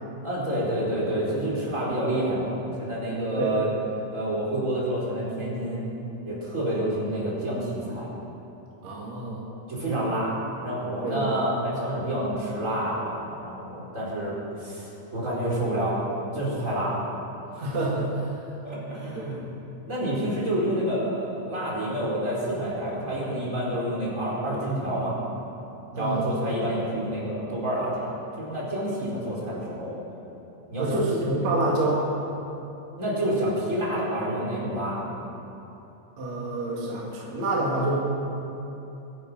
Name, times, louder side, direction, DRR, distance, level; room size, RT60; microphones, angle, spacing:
voice 1, 0.2-3.7 4.1-5.9 6.2-8.1 9.7-10.3 10.6-16.0 16.3-17.0 17.5-17.6 18.6-19.5 19.9-25.2 25.9-29.9 30.7-31.0 33.0-35.2, right 1 dB, 20° right, -6 dB, 4.5 m, -28 dB
voice 2, 8.8-9.4 11.0-11.4 17.6-18.3 19.1-19.5 26.0-26.3 30.8-32.0 36.2-38.0, right 2 dB, 55° right, -5 dB, 3.3 m, -27 dB
24.0 x 9.9 x 5.7 m, 2.9 s
omnidirectional pair, 3.9 m